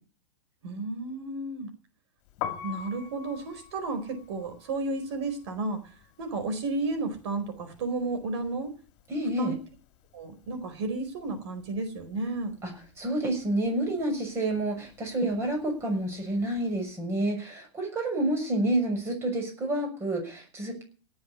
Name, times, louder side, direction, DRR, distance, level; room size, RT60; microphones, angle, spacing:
voice 1, 0.6-1.7 2.6-8.7 9.4-9.6 10.1-12.6, right 3 dB, 65° right, 8 dB, 4.7 m, -32 dB
Piano, 2.3-8.2 8.5-10.1 10.3-16.8, left 9 dB, 35° left, 2.6 m, -43 dB
voice 2, 9.1-9.5 12.6-12.7 13.0-20.8, right 1 dB, 15° right, 3 dB, 6.5 m, -29 dB
17.5 x 7.9 x 9.7 m, 0.39 s
supercardioid pair, 155°, 15 cm